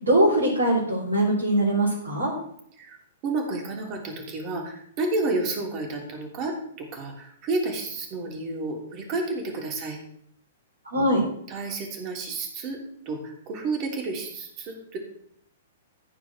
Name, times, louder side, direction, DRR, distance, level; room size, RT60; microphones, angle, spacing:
voice 1, 0.0-2.3 10.9-11.2, right 1 dB, 75° right, -6 dB, 3.9 m, -22 dB
voice 2, 3.2-10.0 11.5-12.8 13.0-15.0, right 3 dB, 35° right, 1 dB, 3.2 m, -31 dB
14.5 x 4.9 x 6.4 m, 0.68 s
figure-of-eight pair, 110°, 0 cm